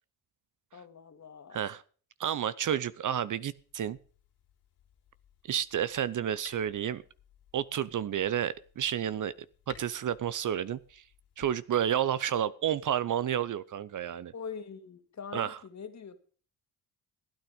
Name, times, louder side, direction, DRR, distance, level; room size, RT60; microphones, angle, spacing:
voice 1, 0.7-1.6 14.3-16.3, left 6 dB, 45° left, 8 dB, 2.2 m, -43 dB
voice 2, 2.2-4.0 5.5-7.0 7.5-9.3 9.7-11.0 11.4-14.3 15.3-15.6, right 9 dB, 50° right, 17 dB, 0.8 m, -30 dB
sound 1, 3.5-11.5, left 9 dB, 80° left, 3.7 m, -58 dB
15.5 x 9.3 x 5.1 m, 0.43 s
supercardioid pair, 55°, 39 cm